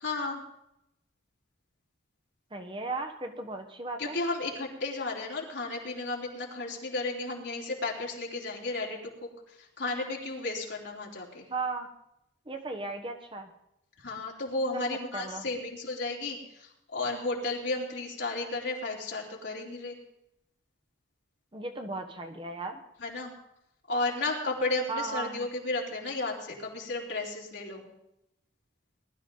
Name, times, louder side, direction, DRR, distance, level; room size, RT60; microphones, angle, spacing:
voice 1, 0.0-0.4 4.0-9.3 9.6-11.4 14.0-20.0 23.0-23.3 23.9-27.8, left 2 dB, 65° left, -2 dB, 3.5 m, -33 dB
voice 2, 2.5-4.2 11.5-11.9 12.5-13.5 14.7-15.4 21.5-22.8 24.9-25.5, right 3 dB, 25° right, 4 dB, 1.1 m, -36 dB
20.0 x 12.5 x 3.9 m, 0.83 s
head